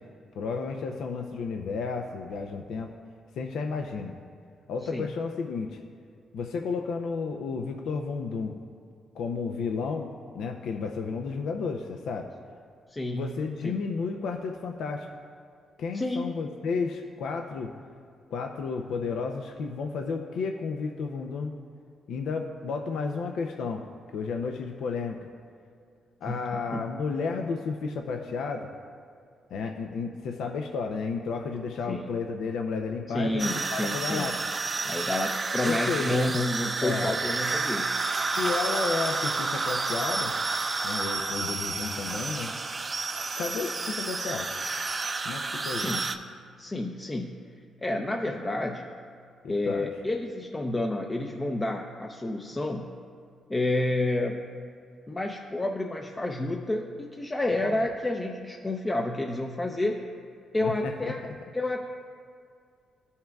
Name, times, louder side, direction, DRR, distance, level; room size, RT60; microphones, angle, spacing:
voice 1, 0.4-2.9 3.4-4.2 4.7-5.8 6.3-8.6 9.1-12.3 13.1-15.1 15.8-17.7 18.3-21.5 22.1-23.9 24.1-25.2 26.2-28.7 29.5-34.5 35.6-36.2 36.8-37.2 38.4-40.3 40.8-42.5 43.4-44.5 45.2-45.9 49.4-49.9 60.6-61.1, left 4 dB, 75° left, 3 dB, 0.5 m, -32 dB
voice 2, 12.9-13.3 13.6-13.8 15.9-16.3 26.3-26.8 31.9-32.1 33.1-34.3 34.8-37.9 45.7-46.1 46.6-47.3 47.8-48.9 49.5-52.9 53.5-54.5 55.1-60.1 60.5-61.2 61.5-61.9, left 2 dB, 25° left, 2 dB, 0.5 m, -30 dB
sound 1, 33.4-46.2, right 3 dB, 35° right, 0.5 m, -30 dB
13.5 x 5.5 x 2.3 m, 2.3 s
cardioid pair, 70°, 0 cm